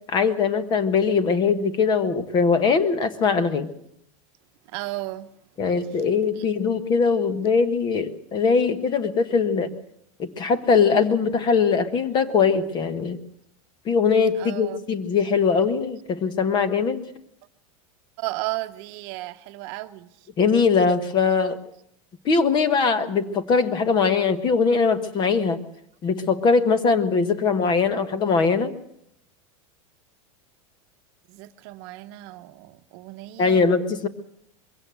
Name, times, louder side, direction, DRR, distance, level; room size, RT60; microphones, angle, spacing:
voice 1, 0.1-3.7 5.6-9.7 10.2-13.2 13.8-17.0 20.4-21.6 22.2-25.6 26.0-28.7 33.4-34.1, left 5 dB, 25° left, 1.3 m, -21 dB
voice 2, 4.7-5.3 6.3-6.5 14.4-14.9 18.2-20.1 31.3-33.6, right 18 dB, 50° right, 1.0 m, -34 dB
22.0 x 16.5 x 7.8 m
supercardioid pair, 160°, 17 cm